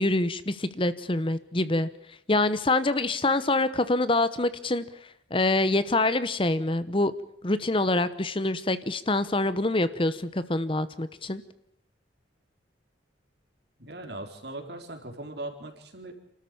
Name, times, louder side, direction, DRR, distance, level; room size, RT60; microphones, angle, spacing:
voice 1, 0.0-1.9 2.3-4.8 5.3-7.1 7.4-11.4, left 2 dB, 25° left, 14 dB, 0.9 m, -25 dB
voice 2, 13.8-16.1, right 2 dB, 60° right, 4 dB, 4.1 m, -39 dB
29.0 x 13.5 x 8.7 m, 0.77 s
head